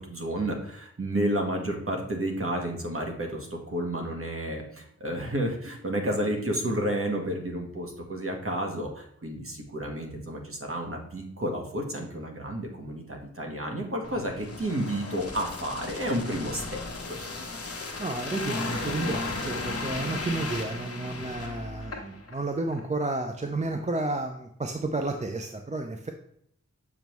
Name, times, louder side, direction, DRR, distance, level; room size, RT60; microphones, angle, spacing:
voice 1, 0.0-16.8 17.1-17.2, right 1 dB, 45° right, 1 dB, 1.4 m, -31 dB
sound 1, 14.0-22.4 22.7-22.9, left 3 dB, 50° left, 1.1 m, -35 dB
voice 2, 18.0-26.1, right 2 dB, 25° right, 4 dB, 0.5 m, -31 dB
7.2 x 5.3 x 3.0 m, 0.70 s
wide cardioid pair, 85°, 30 cm